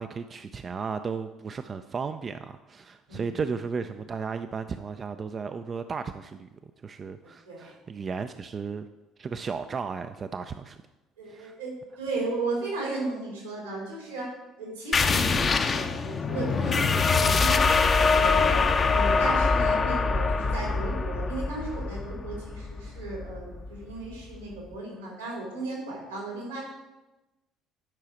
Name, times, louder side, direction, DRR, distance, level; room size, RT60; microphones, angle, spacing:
voice 1, 0.0-6.5 6.8-8.9 9.2-10.8 11.3-11.6, right 5 dB, 35° right, 9 dB, 0.4 m, -34 dB
voice 2, 11.2-14.3 14.6-18.6 18.9-26.6, right 2 dB, 85° right, -2 dB, 3.2 m, -35 dB
sound 1, 14.9-24.1, left 4 dB, 35° left, 0.7 m, -24 dB
10.5 x 5.6 x 5.1 m, 1.0 s
figure-of-eight pair, 55°, 0 cm